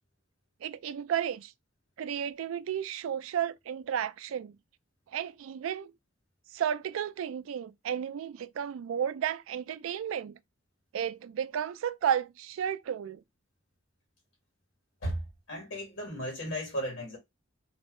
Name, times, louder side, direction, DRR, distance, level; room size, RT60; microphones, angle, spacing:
voice 1, 0.6-1.5 2.0-4.5 5.1-5.9 6.5-10.4 10.9-13.2, right 9 dB, 85° right, 0.3 m, -33 dB
voice 2, 15.5-17.2, equal, 70° left, 1.6 m, -35 dB
2.9 x 2.0 x 3.6 m
head